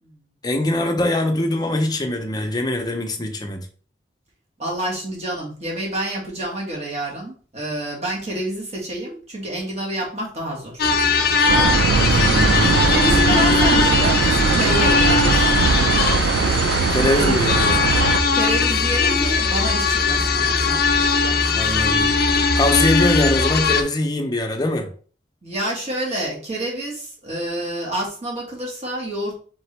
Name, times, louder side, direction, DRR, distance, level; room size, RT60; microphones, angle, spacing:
voice 1, 0.4-3.6 11.9-13.4 16.9-18.0 21.5-22.1 22.5-24.9, left 1 dB, 25° left, 4 dB, 0.7 m, -23 dB
voice 2, 4.6-10.8 11.4-11.7 12.1-12.3 12.7-15.9 17.1-17.5 18.3-20.8 21.2-21.9 25.4-29.4, right 1 dB, 40° right, -3 dB, 1.6 m, -28 dB
sound 1, 10.8-23.8, left 4 dB, 60° left, 0.6 m, -19 dB
sound 2, 11.5-18.2, right 5 dB, 85° right, 0.4 m, -20 dB
3.8 x 3.8 x 3.3 m, 0.41 s
head